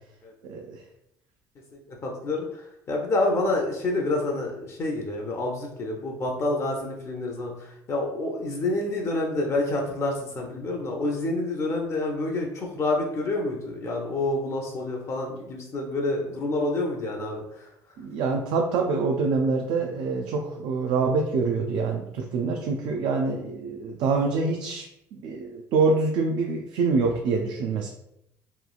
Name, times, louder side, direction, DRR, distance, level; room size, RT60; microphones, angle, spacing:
voice 1, 0.4-0.8 18.0-24.8 25.2-27.9, right 4 dB, 70° right, 1 dB, 0.4 m, -25 dB
voice 2, 1.7-17.7, left 2 dB, 35° left, 0 dB, 0.5 m, -28 dB
3.0 x 2.3 x 2.3 m, 0.80 s
cardioid pair, 120°, 8 cm